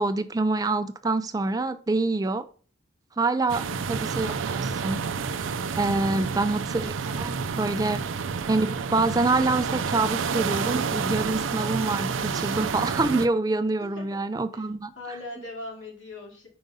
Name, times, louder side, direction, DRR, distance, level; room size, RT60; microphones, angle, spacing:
voice 1, 0.0-2.5 3.2-5.0 5.8-8.0 8.5-14.9, right 3 dB, 20° right, 0.4 m, -26 dB
voice 2, 3.5-4.1 13.9-14.0 14.5-14.6 15.0-16.5, left 2 dB, 85° left, 2.5 m, -40 dB
sound 1, 3.5-13.3, right 5 dB, 90° right, 0.5 m, -29 dB
5.2 x 4.8 x 5.3 m
head